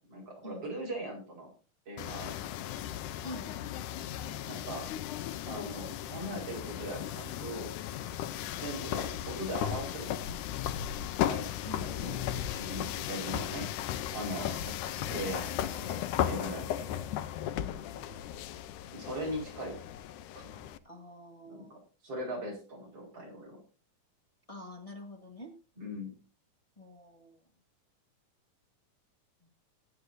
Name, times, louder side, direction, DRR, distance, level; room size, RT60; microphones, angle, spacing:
voice 1, 0.0-1.5 1.9-2.5 4.4-4.9 5.5-7.7 8.6-10.3 10.8-10.9 11.3-11.5 11.8-17.0 18.9-19.8 20.3-20.7 21.5-21.7 22.0-23.6 25.8-26.2, right 1 dB, 50° right, -1 dB, 5.9 m, -40 dB
sound 1, 2.0-20.8, left 11 dB, 90° left, 2.2 m, -36 dB
voice 2, 11.6-12.0 14.3-14.5 17.6-18.1 20.8-21.8 24.5-25.5 26.8-27.4 29.4-29.5, left 1 dB, 35° left, 2 dB, 0.5 m, -47 dB
21.0 x 8.4 x 2.7 m, 0.33 s
omnidirectional pair, 3.5 m